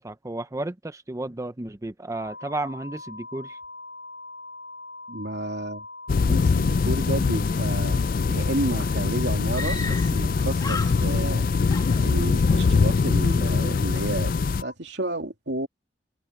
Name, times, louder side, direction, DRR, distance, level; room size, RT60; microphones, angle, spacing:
voice 1, 0.0-3.6, right 2 dB, 20° right, 0.6 m, -33 dB
sound 1, 2.1-14.7, left 2 dB, 85° left, 6.0 m, -41 dB
voice 2, 5.1-5.8 6.3-11.4 12.0-14.3 14.6-15.7, right 1 dB, 85° right, 2.8 m, -31 dB
sound 2, 6.1-14.6, left 4 dB, 55° left, 0.4 m, -23 dB
Screaming, 9.5-10.3 10.6-11.4 11.7-12.6, left 3 dB, 20° left, 2.1 m, -35 dB
head